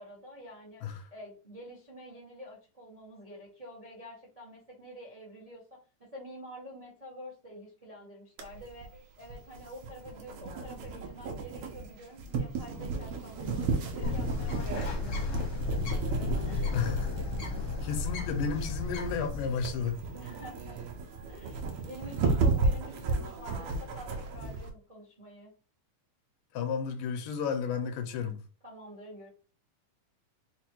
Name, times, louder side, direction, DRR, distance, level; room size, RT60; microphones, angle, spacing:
voice 1, 0.0-8.9 9.2-16.9 20.1-20.8 21.3-25.5 28.6-29.3, equal, 55° right, 0.4 m, -48 dB
sound 1, 8.4-24.7, right 4 dB, 85° right, 1.2 m, -34 dB
Bird, 14.0-19.9, left 3 dB, 65° left, 1.3 m, -33 dB
voice 2, 16.7-17.1 17.8-20.0 26.5-28.4, left 6 dB, 80° left, 2.2 m, -32 dB
5.2 x 2.2 x 4.4 m
omnidirectional pair, 3.8 m